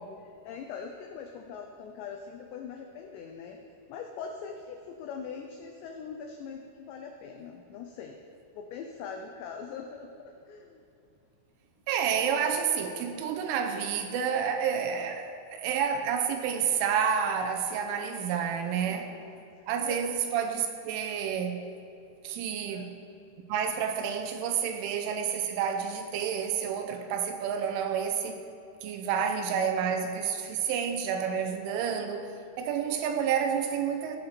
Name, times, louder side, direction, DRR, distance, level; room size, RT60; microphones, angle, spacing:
voice 1, 0.4-3.6 3.9-8.2 8.6-10.8 12.1-12.2 18.8-19.4 19.8-20.1 22.7-22.9 29.3-29.7, left 6 dB, 90° left, 4 dB, 2.5 m, -42 dB
voice 2, 11.9-19.1 19.7-21.6 22.2-22.9 23.5-28.4 28.8-32.3 32.6-34.2, right 7 dB, 80° right, 5 dB, 3.0 m, -29 dB
16.5 x 9.1 x 4.4 m, 2.6 s
omnidirectional pair, 5.9 m